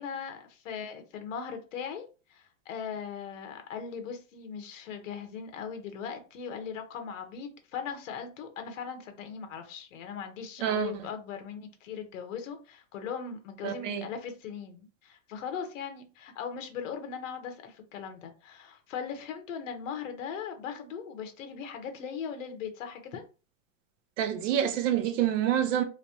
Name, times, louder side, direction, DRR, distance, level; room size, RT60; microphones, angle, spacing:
voice 1, 0.0-23.2, left 7 dB, 65° left, 1.0 m, -39 dB
voice 2, 10.6-10.9 13.6-14.1 24.2-25.8, right 10 dB, 65° right, 0.8 m, -27 dB
3.2 x 3.2 x 2.8 m
supercardioid pair, 170°, 41 cm